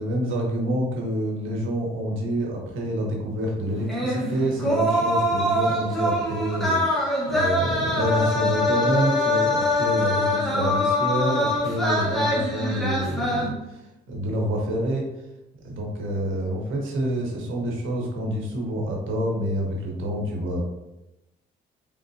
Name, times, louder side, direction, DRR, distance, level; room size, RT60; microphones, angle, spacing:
voice 1, 0.0-15.1 15.6-20.6, equal, 80° right, 0 dB, 1.1 m, -27 dB
sound 1, 3.9-13.5, left 1 dB, ahead, 1.3 m, -24 dB
3.6 x 3.6 x 2.7 m, 0.93 s
cardioid pair, 90°, 20 cm